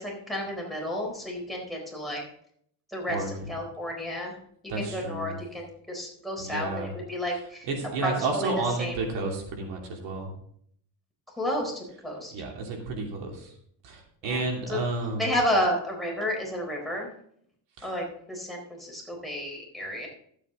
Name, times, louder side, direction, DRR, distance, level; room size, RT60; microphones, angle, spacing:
voice 1, 0.0-2.2 2.9-3.2 3.5-4.3 4.8-7.7 8.0-8.5 8.8-9.0 11.4-12.3 14.2-14.4 14.7-14.8 15.2-17.1 17.8-20.1, left 1 dB, ahead, -1 dB, 4.0 m, -31 dB
voice 2, 3.1-3.5 4.7-5.4 6.4-6.9 7.7-10.3 12.3-13.5 13.8-15.2 17.8-17.9, right 3 dB, 75° right, 1 dB, 2.8 m, -31 dB
12.5 x 8.2 x 3.8 m, 0.65 s
cardioid pair, 125°, 43 cm